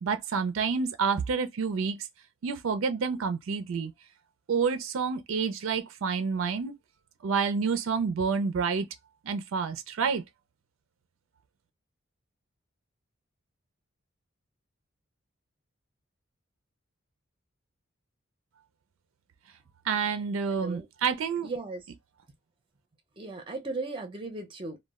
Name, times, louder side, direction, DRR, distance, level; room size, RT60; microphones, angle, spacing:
voice 1, 0.0-2.1 2.4-3.9 4.5-6.7 7.2-8.9 9.2-10.2 19.9-21.5, right 5 dB, 75° right, 0.4 m, -28 dB
voice 2, 20.1-20.9 21.4-21.8 23.2-24.8, right 3 dB, 25° right, 0.5 m, -37 dB
2.2 x 2.0 x 3.4 m
head